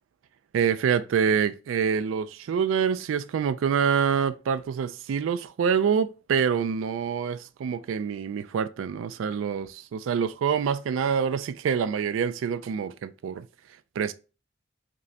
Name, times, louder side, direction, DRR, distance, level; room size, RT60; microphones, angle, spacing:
voice 1, 0.5-13.5 14.0-14.1, right 7 dB, 85° right, 0.3 m, -26 dB
5.2 x 2.1 x 2.7 m
head